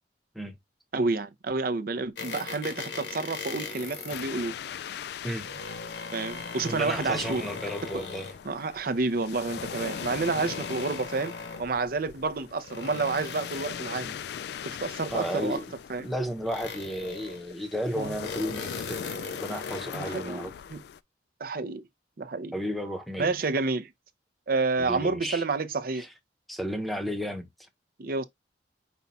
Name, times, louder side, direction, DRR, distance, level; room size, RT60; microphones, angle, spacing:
voice 1, 0.9-4.5 6.1-7.4 8.5-11.3 11.6-14.2 14.6-15.6 15.9-16.1 18.0-18.1 19.9-20.8 21.4-21.9 22.2-22.5 23.2-23.9 24.5-26.1 28.0-28.2, right 3 dB, 55° right, 0.6 m, -29 dB
sound 1, 2.2-4.3 5.2-8.4 9.3-11.7 12.4-14.1 15.0-15.9 16.5-17.5 18.1-20.0, left 4 dB, 80° left, 1.0 m, -39 dB
sound 2, 4.1-21.0, left 8 dB, 65° left, 0.3 m, -41 dB
voice 2, 6.6-8.3 15.1-15.7 16.0-19.0 19.4-20.5 22.5-23.3 24.8-25.4 25.9-26.1 26.5-27.5, equal, ahead, 0.8 m, -33 dB
5.4 x 2.3 x 4.0 m
head